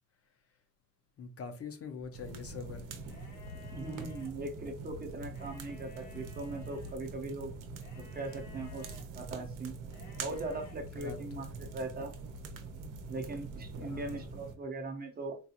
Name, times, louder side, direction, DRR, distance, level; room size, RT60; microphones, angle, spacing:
voice 1, 1.2-2.9 11.0-11.4 13.8-14.3, left 5 dB, 45° left, 0.5 m, -44 dB
sound 1, 2.1-14.5, right 3 dB, 80° right, 0.7 m, -44 dB
sound 2, 3.0-4.3 5.2-6.9 7.8-9.0 9.9-10.8, left 6 dB, 85° left, 0.8 m, -56 dB
voice 2, 3.7-7.5 8.0-8.9 9.1-9.7 10.2-12.1 13.1-15.4, right 2 dB, 30° right, 0.6 m, -40 dB
3.9 x 2.4 x 2.7 m
wide cardioid pair, 170°, 32 cm